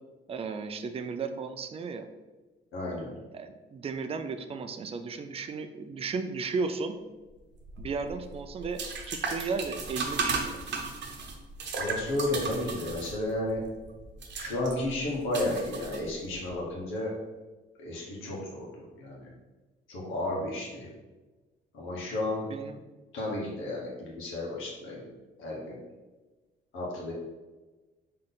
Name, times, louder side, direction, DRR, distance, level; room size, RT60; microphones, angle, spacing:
voice 1, 0.3-2.1 3.3-7.0 7.8-8.8 9.1-10.6 22.5-22.8, right 4 dB, 30° right, 8 dB, 0.4 m, -34 dB
voice 2, 2.7-3.1 11.7-13.6 14.3-17.1 17.8-19.3 19.9-20.9 21.7-22.4 23.1-25.0 25.4-25.8 26.7-27.1, left 1 dB, 90° left, -4 dB, 1.3 m, -33 dB
sound 1, 7.6-16.5, right 4 dB, 60° right, 0.9 m, -36 dB
3.9 x 3.2 x 4.0 m, 1.2 s
cardioid pair, 90°, 20 cm